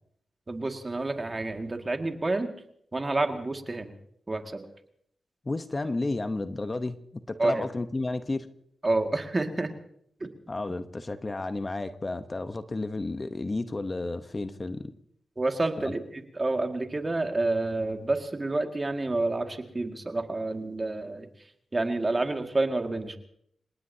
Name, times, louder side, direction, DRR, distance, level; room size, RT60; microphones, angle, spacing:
voice 1, 0.5-2.5 2.9-3.9 4.3-4.6 7.4-7.7 8.8-9.7 10.2-10.3 15.4-23.2, right 2 dB, 30° right, 4 dB, 2.0 m, -29 dB
voice 2, 5.4-8.5 10.5-14.9 15.8-15.9, left 2 dB, 35° left, 9 dB, 1.0 m, -32 dB
27.5 x 18.5 x 2.8 m, 0.69 s
cardioid pair, 65°, 0 cm